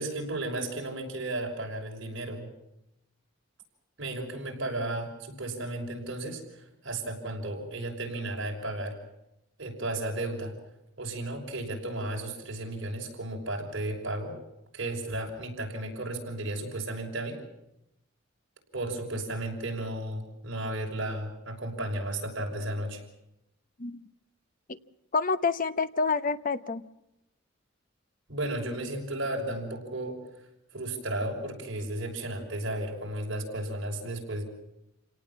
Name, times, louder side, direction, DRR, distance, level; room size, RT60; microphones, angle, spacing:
voice 1, 0.0-2.5 4.0-9.0 9.6-10.5 11.0-14.4 14.7-17.4 18.7-23.0 28.3-30.2 30.7-34.4, right 1 dB, 60° right, 0 dB, 6.2 m, -34 dB
voice 2, 25.1-26.9, left 4 dB, 40° left, 12 dB, 0.9 m, -28 dB
28.0 x 18.5 x 7.4 m, 0.85 s
head